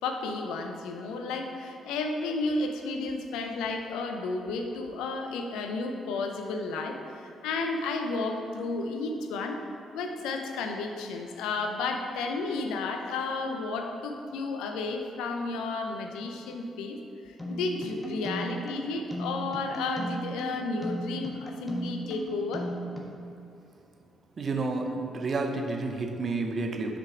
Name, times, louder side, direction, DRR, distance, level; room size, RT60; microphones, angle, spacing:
voice 1, 0.0-9.6 9.9-17.0 17.2-22.7, left 3 dB, 70° left, 4 dB, 0.6 m, -32 dB
sound 1, 17.4-23.1, right 1 dB, 15° left, 1.4 m, -37 dB
voice 2, 24.4-27.0, right 3 dB, 50° right, 4 dB, 0.7 m, -30 dB
6.3 x 5.1 x 5.0 m, 2.7 s
hypercardioid pair, 40°, 0 cm